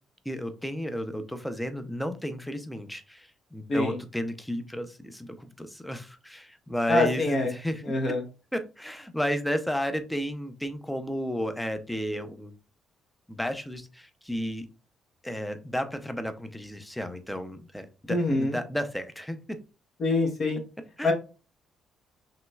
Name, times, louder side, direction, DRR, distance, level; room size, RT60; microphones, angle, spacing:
voice 1, 0.3-7.9 8.5-12.5 13.3-14.7 15.2-19.6 21.0-21.1, equal, 5° left, 9 dB, 0.5 m, -33 dB
voice 2, 6.9-7.5 7.8-8.2 18.1-18.6 20.0-20.6 21.0-21.1, left 2 dB, 45° left, 2 dB, 0.9 m, -25 dB
5.6 x 3.0 x 2.3 m, 0.32 s
cardioid pair, 125°, 0 cm